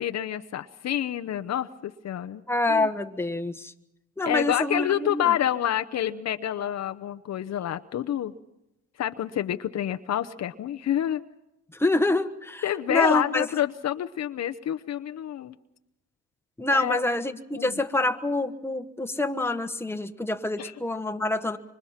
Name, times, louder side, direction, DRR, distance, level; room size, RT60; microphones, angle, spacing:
voice 1, 0.0-2.4 2.7-2.9 4.2-8.3 9.0-11.2 12.6-15.6 16.7-17.0 17.5-17.8 20.6-20.7, left 11 dB, 60° left, 8 dB, 0.8 m, -28 dB
voice 2, 2.5-3.7 4.2-5.3 11.8-13.4 16.6-21.6, left 2 dB, 10° left, 6 dB, 1.3 m, -26 dB
25.0 x 25.0 x 5.8 m, 0.88 s
cardioid pair, 90°, 30 cm